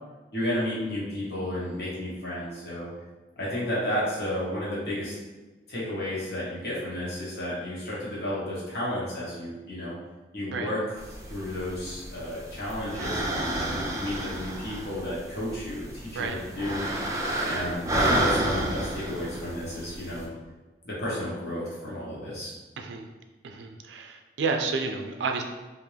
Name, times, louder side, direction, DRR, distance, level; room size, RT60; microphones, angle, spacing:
voice 1, 0.3-2.9 3.4-5.1 5.7-9.9 10.3-10.8 11.3-16.8 17.4-20.3 20.8-22.5, left 1 dB, 60° left, -8 dB, 1.1 m, -32 dB
sound 1, 11.0-20.2, right 1 dB, 20° right, 0.4 m, -31 dB
voice 2, 22.8-23.1 23.4-25.4, right 4 dB, 90° right, 4 dB, 0.4 m, -30 dB
3.6 x 2.5 x 3.3 m, 1.2 s
head